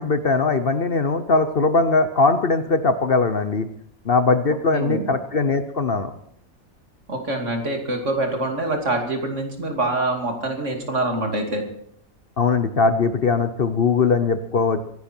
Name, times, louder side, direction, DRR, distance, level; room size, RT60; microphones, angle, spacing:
voice 1, 0.0-3.7 4.0-6.1 12.4-14.9, left 4 dB, 45° left, 10 dB, 1.0 m, -20 dB
voice 2, 4.7-5.1 7.1-11.6, right 2 dB, 55° right, 3 dB, 3.0 m, -25 dB
25.0 x 11.0 x 4.5 m, 0.67 s
omnidirectional pair, 1.5 m